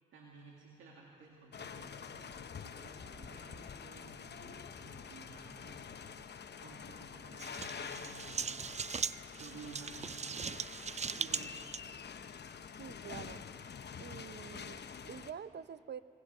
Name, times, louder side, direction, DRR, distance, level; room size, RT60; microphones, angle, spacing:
voice 1, 0.1-5.9 6.3-8.6 9.4-10.4 11.1-11.6, right 4 dB, 90° right, -2 dB, 2.2 m, -54 dB
sound 1, 1.5-15.3, left 7 dB, 60° left, 0.9 m, -47 dB
sound 2, 7.4-11.8, right 6 dB, 35° right, 0.5 m, -39 dB
voice 2, 12.8-13.4 14.0-16.0, right 7 dB, 60° right, 14 dB, 0.8 m, -47 dB
25.0 x 20.0 x 5.6 m, 2.5 s
supercardioid pair, 45°, 20 cm